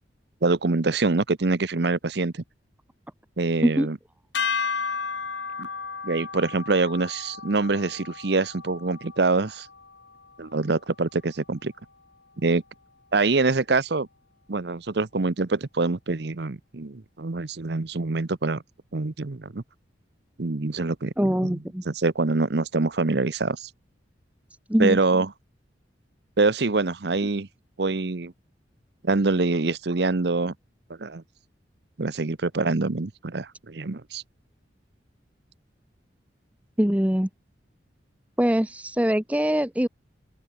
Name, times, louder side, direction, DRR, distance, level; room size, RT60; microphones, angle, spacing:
voice 1, 0.4-2.4 3.4-4.0 5.6-5.7 6.0-9.7 10.4-11.7 12.4-12.6 13.1-14.1 14.5-18.6 18.9-19.6 20.4-21.1 21.4-21.6 21.9-23.7 24.8-25.3 26.4-27.5 27.8-28.3 29.0-30.5 31.0-31.2 32.0-34.2, right 3 dB, 60° right, 0.8 m, -25 dB
sound 1, 4.3-10.7, left 5 dB, 75° left, 3.4 m, -33 dB
voice 2, 21.2-21.8 24.7-25.0 36.8-37.3 38.4-39.9, equal, 10° right, 1.0 m, -23 dB
open air
head